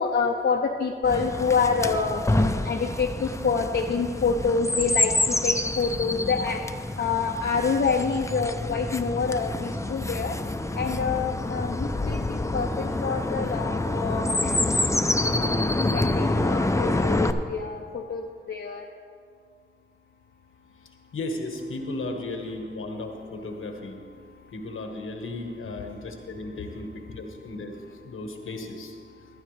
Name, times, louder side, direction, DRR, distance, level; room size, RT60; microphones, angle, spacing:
voice 1, 0.0-2.2 2.6-6.6 7.0-10.4 10.7-14.8 15.1-18.9, left 5 dB, 60° left, 1 dB, 0.7 m, -27 dB
Chirp tweet, 1.0-17.3, left 2 dB, 15° left, 0.6 m, -27 dB
voice 2, 21.1-24.0 24.5-27.7 28.0-29.0, left 2 dB, 80° left, 4 dB, 1.4 m, -35 dB
14.5 x 11.5 x 3.3 m, 2.2 s
cardioid pair, 50°, 21 cm